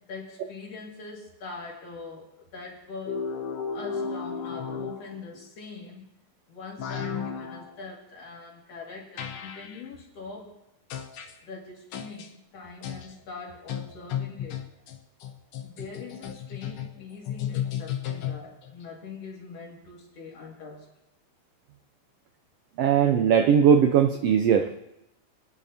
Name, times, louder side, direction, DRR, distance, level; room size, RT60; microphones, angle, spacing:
voice 1, 0.1-3.3 3.7-6.1 6.5-10.5 11.4-14.6 15.6-20.9, left 4 dB, 55° left, -2 dB, 3.1 m, -42 dB
sound 1, 3.1-5.4 6.8-7.7 9.2-9.8 10.9-11.3 11.9-12.3 12.8-13.1 13.7-18.7, left 8 dB, 75° left, 1.3 m, -34 dB
voice 2, 22.8-24.7, right 7 dB, 80° right, 7 dB, 1.4 m, -19 dB
24.0 x 9.8 x 2.8 m, 0.89 s
omnidirectional pair, 3.4 m